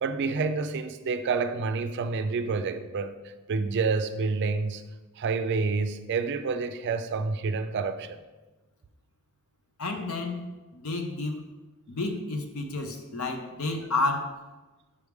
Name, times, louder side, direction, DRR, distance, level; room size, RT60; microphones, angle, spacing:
voice 1, 0.0-3.2 3.5-4.8 5.2-8.2, right 4 dB, 50° right, 0.4 m, -28 dB
voice 2, 9.8-10.4 10.7-11.4 11.9-14.3, left 3 dB, 75° left, 0.7 m, -30 dB
6.9 x 4.7 x 3.5 m
head